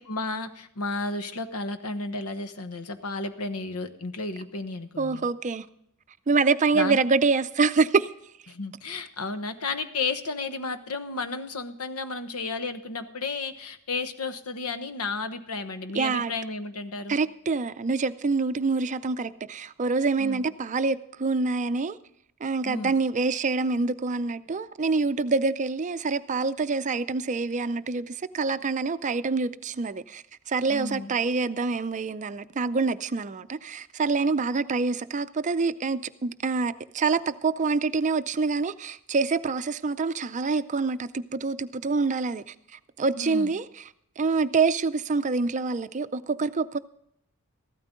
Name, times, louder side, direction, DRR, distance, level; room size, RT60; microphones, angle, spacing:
voice 1, 0.0-5.3 6.7-7.0 8.5-17.2 20.2-20.4 22.6-22.9 30.7-31.1 43.2-43.5, left 3 dB, 90° left, 1.1 m, -33 dB
voice 2, 5.0-5.7 6.3-8.1 15.9-16.3 17.1-22.0 22.4-43.8 44.2-46.8, right 4 dB, 35° right, 0.5 m, -26 dB
15.0 x 13.0 x 3.7 m
head